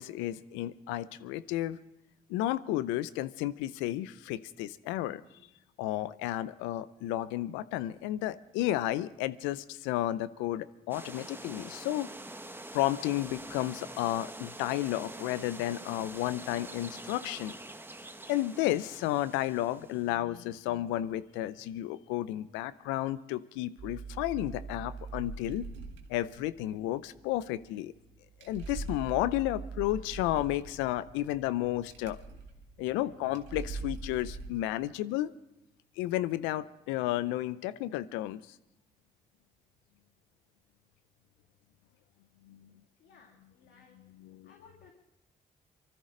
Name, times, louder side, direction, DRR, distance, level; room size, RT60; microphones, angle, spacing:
voice 1, 0.0-1.8 2.3-5.2 5.8-12.1 12.7-17.5 18.3-25.7 26.1-27.9 28.4-32.2 32.8-35.3 36.0-38.4 42.4-42.7 44.2-44.5, left 14 dB, 90° left, 16 dB, 0.6 m, -32 dB
sound 1, 10.9-20.1, right 1 dB, 10° right, 1.2 m, -45 dB
sound 2, 23.8-34.6, right 4 dB, 75° right, 1.8 m, -42 dB
voice 2, 43.0-44.0 44.4-44.9, left 5 dB, 70° left, 0 dB, 2.6 m, -59 dB
24.5 x 14.0 x 3.9 m, 0.89 s
hypercardioid pair, 45°, 19 cm